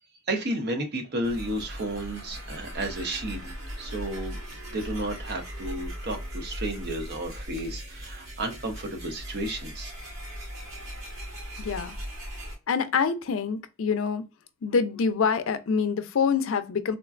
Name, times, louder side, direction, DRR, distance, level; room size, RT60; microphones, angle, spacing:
voice 1, 0.3-3.5 3.8-4.4 4.7-9.9, right 1 dB, 55° right, 0.7 m, -32 dB
sound 1, 1.2-12.6, equal, 85° right, 1.6 m, -38 dB
voice 2, 11.6-12.0 12.7-14.2 14.6-17.0, left 5 dB, 75° left, 0.4 m, -26 dB
3.7 x 2.2 x 2.4 m
head